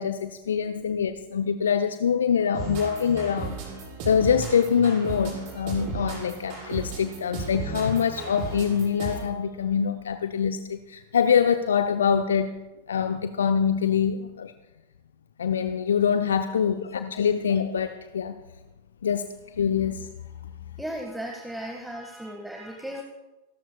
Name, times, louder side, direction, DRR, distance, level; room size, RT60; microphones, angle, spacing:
voice 1, 0.0-3.6 4.1-12.5 12.9-14.5 15.4-18.4 19.0-20.1, left 7 dB, 65° left, 8 dB, 0.7 m, -24 dB
sound 1, 2.5-9.4, right 4 dB, 45° right, 6.5 m, -35 dB
voice 2, 20.8-23.0, equal, 5° right, 2 dB, 1.8 m, -36 dB
28.5 x 13.5 x 2.4 m, 1.1 s
figure-of-eight pair, 90°, 0 cm